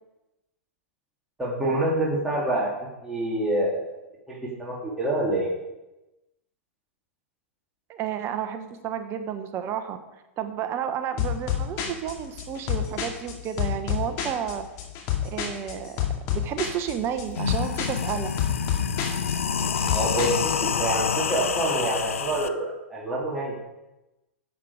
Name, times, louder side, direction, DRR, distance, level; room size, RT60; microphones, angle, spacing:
voice 1, 1.4-3.9 4.3-5.5 19.8-23.6, right 1 dB, 5° right, -6 dB, 2.7 m, -27 dB
voice 2, 7.9-10.0 10.4-14.6 15.2-15.9 16.3-18.3, right 9 dB, 35° right, 9 dB, 1.0 m, -31 dB
sound 1, 11.2-20.7, left 9 dB, 45° left, 2.4 m, -29 dB
sound 2, 16.8-16.9 17.2-22.5, left 7 dB, 80° left, 0.6 m, -27 dB
11.0 x 7.7 x 4.9 m, 0.97 s
hypercardioid pair, 105°, 7 cm